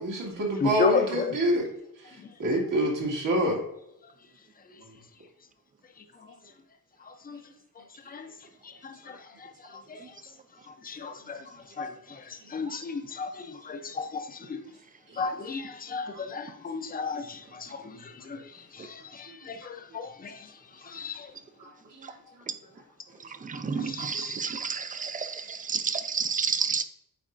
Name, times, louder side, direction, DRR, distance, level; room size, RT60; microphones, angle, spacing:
voice 1, 0.0-1.7 2.4-3.6 16.1-16.2 22.0-22.1, right 1 dB, 70° right, 2.0 m, -26 dB
voice 2, 0.6-1.2 8.1-8.2 10.9-11.4 11.8-11.9 12.5-13.3 13.7-14.2 14.5-14.6 15.2-17.2 19.5-19.6 19.9-20.1 20.9-21.2, left 4 dB, 25° left, 0.6 m, -30 dB
voice 3, 23.4-26.8, right 5 dB, 25° right, 0.4 m, -30 dB
9.0 x 4.2 x 2.5 m
wide cardioid pair, 150°, 33 cm